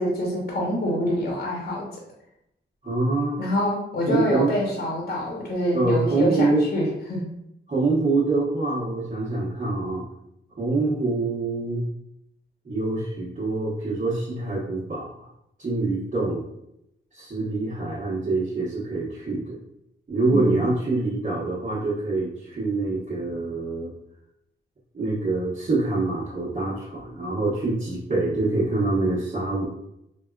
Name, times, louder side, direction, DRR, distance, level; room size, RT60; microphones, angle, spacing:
voice 1, 0.0-2.0 3.4-7.3 20.3-20.6, equal, 45° left, -3 dB, 0.9 m, -26 dB
voice 2, 2.8-3.4 4.1-4.5 5.7-6.6 7.7-10.0 10.6-11.8 12.6-15.3 15.6-16.4 17.1-19.5 20.1-23.9 24.9-29.7, right 2 dB, 35° right, -8 dB, 1.0 m, -25 dB
3.4 x 2.2 x 2.3 m, 0.81 s
cardioid pair, 65°, 21 cm